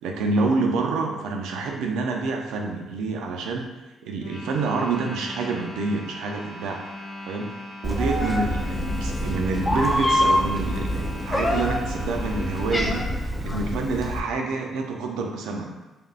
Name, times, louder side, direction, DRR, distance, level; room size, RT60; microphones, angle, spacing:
voice 1, 0.0-3.7 4.0-6.8 7.3-7.5 7.8-15.7, right 3 dB, 90° right, 2 dB, 0.4 m, -27 dB
sound 1, 4.2-13.0, left 1 dB, 70° left, 0.6 m, -39 dB
Meow, 7.8-14.2, left 1 dB, 15° left, 0.3 m, -25 dB
3.4 x 2.4 x 2.4 m, 1.1 s
cardioid pair, 90°, 0 cm